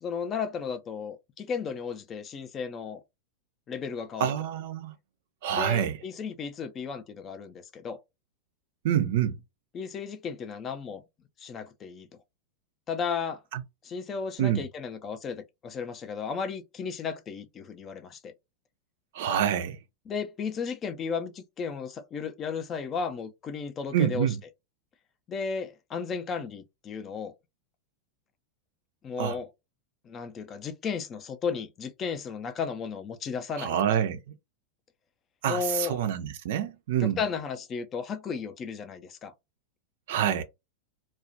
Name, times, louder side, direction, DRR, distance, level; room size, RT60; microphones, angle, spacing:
voice 1, 0.0-3.0 3.7-4.3 5.5-8.0 9.7-11.0 11.4-12.1 12.9-13.4 13.8-18.3 20.1-24.3 25.3-27.3 29.0-29.5 30.0-33.7 35.5-36.0 37.0-39.3, left 6 dB, 25° left, 0.4 m, -34 dB
voice 2, 4.2-4.9 5.4-6.0 8.8-9.4 13.5-13.6 14.4-14.6 19.1-19.8 23.9-24.4 29.2-29.4 33.5-34.3 35.4-37.2 40.1-40.4, right 10 dB, 55° right, 0.4 m, -27 dB
2.3 x 2.1 x 2.7 m
figure-of-eight pair, 90°, 0 cm